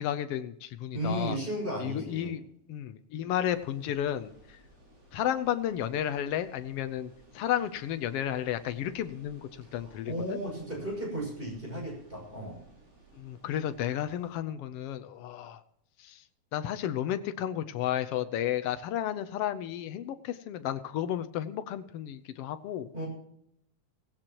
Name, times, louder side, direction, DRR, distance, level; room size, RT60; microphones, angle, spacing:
voice 1, 0.0-1.4 1.8-2.4 2.7-4.6 5.1-10.4 13.1-15.6 16.0-16.2 16.5-22.9, left 11 dB, 70° left, 10 dB, 1.4 m, -32 dB
voice 2, 0.9-2.4 9.8-12.6 22.9-23.1, right 1 dB, 15° right, -1 dB, 6.4 m, -35 dB
sound 1, 3.4-14.4, right 2 dB, 50° right, 6.7 m, -58 dB
17.0 x 16.5 x 3.0 m, 0.73 s
omnidirectional pair, 3.4 m